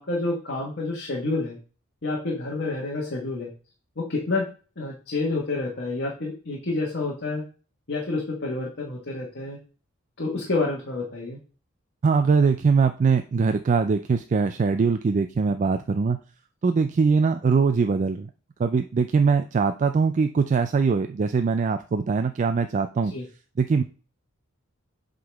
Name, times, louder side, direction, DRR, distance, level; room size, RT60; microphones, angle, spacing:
voice 1, 0.0-1.6 2.0-3.5 4.0-4.5 4.8-7.4 7.9-9.6 10.2-11.4 23.1-23.2, left 3 dB, 55° left, -2 dB, 1.4 m, -28 dB
voice 2, 12.0-16.2 16.6-18.3 18.6-23.1 23.6-23.8, right 5 dB, 35° right, 8 dB, 0.3 m, -22 dB
7.8 x 3.8 x 3.4 m, 0.36 s
head